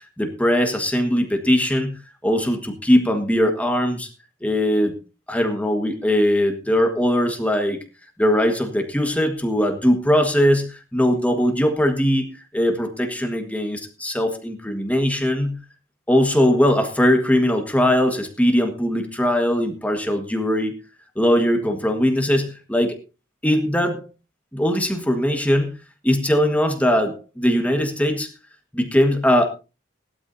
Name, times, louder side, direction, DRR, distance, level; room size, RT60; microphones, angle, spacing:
voice 1, 0.0-4.1 4.4-4.9 5.3-7.8 8.2-12.3 12.5-15.6 16.1-20.7 21.1-23.0 23.4-24.0 24.5-25.8 26.0-28.3 28.7-29.5, equal, 5° left, 4 dB, 1.5 m, -20 dB
18.5 x 12.5 x 2.7 m, 0.30 s
head